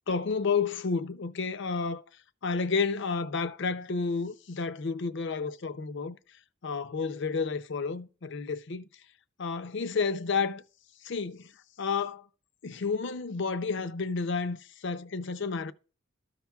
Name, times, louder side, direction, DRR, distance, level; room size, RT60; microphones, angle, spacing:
voice 1, 0.1-2.0 2.4-6.2 6.6-8.9 9.4-10.6 11.0-11.5 11.8-12.3 12.6-15.7, left 4 dB, 60° left, 0.6 m, -31 dB
13.5 x 5.7 x 2.3 m
head